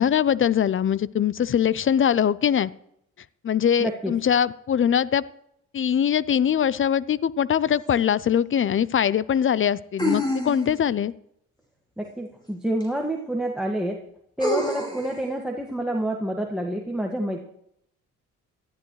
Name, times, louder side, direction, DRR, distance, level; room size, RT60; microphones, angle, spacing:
voice 1, 0.0-2.7 3.4-5.2 5.7-11.1, left 8 dB, 40° left, 20 dB, 0.6 m, -22 dB
voice 2, 3.8-4.1 12.0-14.0 14.4-17.4, right 1 dB, ahead, 2 dB, 1.9 m, -28 dB
sound 1, 7.9-8.0 10.0-10.9 12.8-12.9 14.4-15.1, left 1 dB, 15° left, 4.3 m, -27 dB
18.0 x 13.0 x 3.2 m, 0.75 s
supercardioid pair, 70°, 32 cm